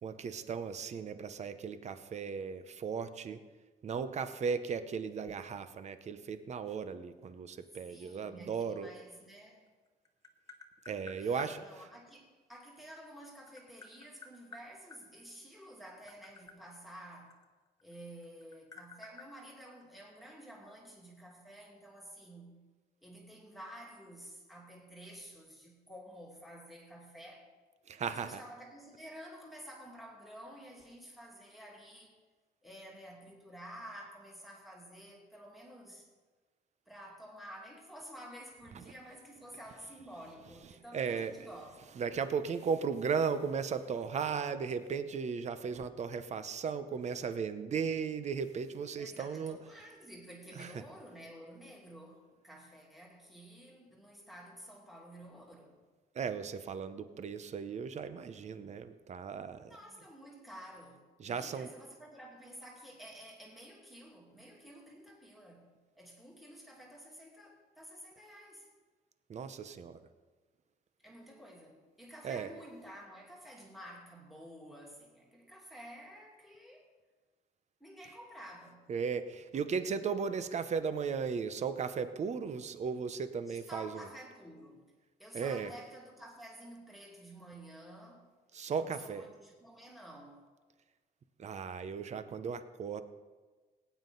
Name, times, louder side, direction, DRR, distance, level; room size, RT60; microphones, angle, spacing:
voice 1, 0.0-3.4 3.8-8.9 10.9-11.6 27.9-28.4 40.9-41.3 42.0-49.6 50.5-50.8 56.1-59.7 61.2-61.7 69.3-70.0 72.2-72.5 78.9-84.1 85.3-85.7 88.5-89.2 91.4-93.0, right 6 dB, 40° right, 0.8 m, -36 dB
voice 2, 7.9-9.7 11.2-17.4 17.8-22.6 23.0-27.5 28.0-32.2 32.6-36.1 36.9-42.0 49.0-55.8 59.6-68.7 71.0-76.9 77.8-78.9 83.5-84.9 85.2-88.3 88.7-90.5, equal, ahead, 2.5 m, -51 dB
Tap, 9.7-11.5 12.9-15.0 15.8-17.9 18.2-20.2, left 3 dB, 20° left, 1.3 m, -52 dB
18.0 x 9.3 x 3.9 m
cardioid pair, 120°, 17 cm